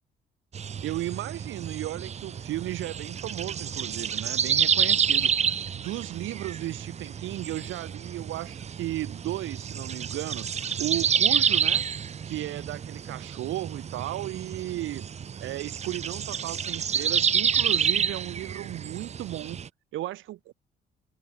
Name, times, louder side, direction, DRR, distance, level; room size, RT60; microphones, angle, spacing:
sound 1, 0.5-19.7, right 7 dB, 35° right, 0.5 m, -29 dB
voice 1, 0.8-5.3 5.7-10.5 10.8-11.9 12.2-15.0 15.4-19.6 19.9-20.5, right 15 dB, 80° right, 1.0 m, -35 dB
cardioid pair, 90°, 20 cm